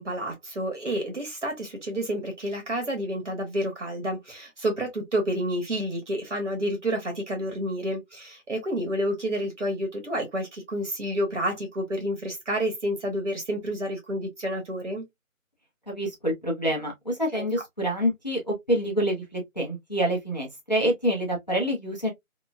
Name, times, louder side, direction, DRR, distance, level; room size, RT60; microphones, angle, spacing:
voice 1, 0.0-15.0 17.3-17.4, equal, 60° right, 1.2 m, -29 dB
voice 2, 15.9-22.1, equal, 30° left, 0.7 m, -27 dB
3.0 x 2.1 x 2.2 m
figure-of-eight pair, 175°, 41 cm